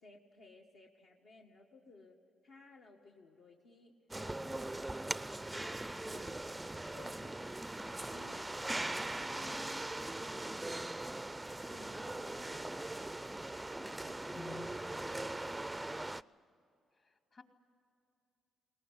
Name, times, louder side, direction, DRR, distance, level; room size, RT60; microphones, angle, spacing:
voice 1, 0.0-2.2 2.4-3.9 4.2-13.3 13.8-15.9, left 2 dB, 70° left, -1 dB, 1.8 m, -59 dB
sound 1, 4.1-16.2, right 2 dB, 10° right, 0.4 m, -40 dB
voice 2, 14.3-15.1 16.9-17.4, left 5 dB, 45° left, 4 dB, 2.8 m, -53 dB
21.0 x 19.0 x 10.0 m, 2.7 s
cardioid pair, 90°, 0 cm